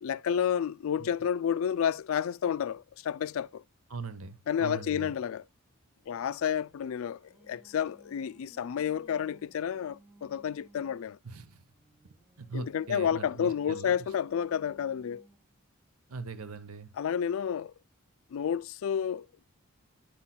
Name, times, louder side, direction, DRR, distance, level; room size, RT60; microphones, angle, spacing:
voice 1, 0.0-3.6 4.5-5.4 6.1-7.2 7.5-11.2 12.5-15.2 17.0-17.7 18.3-19.3, left 8 dB, 70° left, 0.3 m, -30 dB
voice 2, 3.9-5.1 11.2-11.6 12.4-13.9 16.1-16.9, right 4 dB, 80° right, 0.8 m, -41 dB
Singing, 5.7-11.1 11.7-15.6, right 2 dB, 5° right, 0.9 m, -60 dB
10.5 x 5.7 x 2.2 m
head